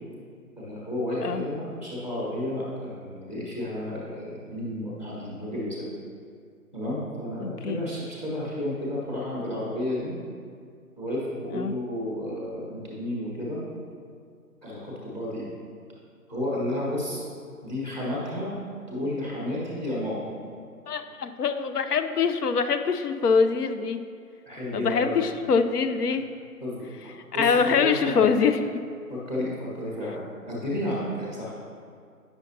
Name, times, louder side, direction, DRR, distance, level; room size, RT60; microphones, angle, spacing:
voice 1, 0.6-5.8 6.7-10.1 11.0-13.6 14.6-15.5 16.3-17.2 17.6-18.6 18.9-20.3 24.5-25.2 26.6-26.8 27.3-28.3 29.1-31.5, left 1 dB, 20° left, -6 dB, 0.9 m, -32 dB
voice 2, 7.4-7.8 11.5-11.7 20.9-24.0 24.7-26.2 27.4-28.8, left 5 dB, 80° left, 9 dB, 0.6 m, -24 dB
8.8 x 5.6 x 2.7 m, 2.2 s
figure-of-eight pair, 160°, 46 cm